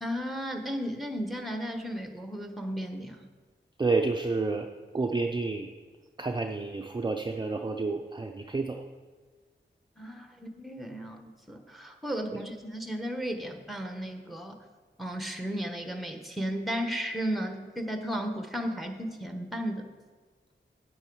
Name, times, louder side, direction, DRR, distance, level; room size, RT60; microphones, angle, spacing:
voice 1, 0.0-3.3 10.0-14.6 15.0-19.9, equal, ahead, 5 dB, 1.1 m, -34 dB
voice 2, 3.8-4.7 4.9-5.7 6.2-8.8 12.3-12.4, right 3 dB, 25° right, 3 dB, 0.5 m, -29 dB
8.7 x 7.7 x 4.7 m, 1.4 s
wide cardioid pair, 65°, 20 cm